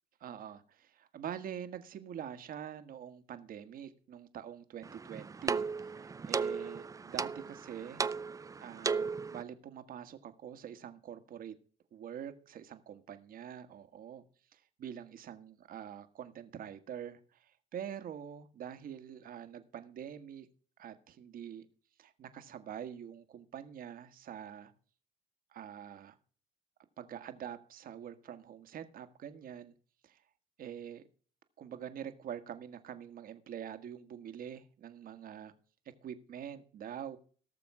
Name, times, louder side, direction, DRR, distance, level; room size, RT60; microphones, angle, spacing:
voice 1, 0.2-8.0 8.6-11.5 11.9-14.2 14.5-20.5 20.8-21.7 22.0-24.7 25.5-26.2 27.0-29.7 30.0-30.2 30.6-31.0 31.6-35.5 36.0-37.2, right 9 dB, 55° right, 10 dB, 1.6 m, -45 dB
sound 1, 4.8-9.4, right 5 dB, 20° right, 0.5 m, -36 dB
17.5 x 6.9 x 4.8 m, 0.43 s
cardioid pair, 110°, 17 cm